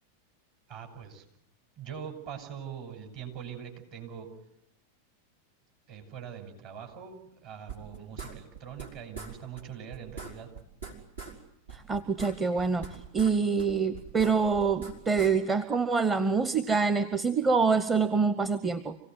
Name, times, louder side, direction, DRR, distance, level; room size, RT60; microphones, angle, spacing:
voice 1, 0.7-1.2 1.8-4.3 5.9-10.5, right 8 dB, 45° right, 3 dB, 6.6 m, -42 dB
sound 1, 7.7-8.9 9.1-9.3 9.6-9.7 9.9-11.4 11.7-13.3 13.6-15.3, right 6 dB, 75° right, 4.8 m, -42 dB
voice 2, 11.7-19.0, right 5 dB, 15° right, 9 dB, 1.0 m, -26 dB
26.5 x 17.5 x 9.3 m, 0.78 s
figure-of-eight pair, 90°, 0 cm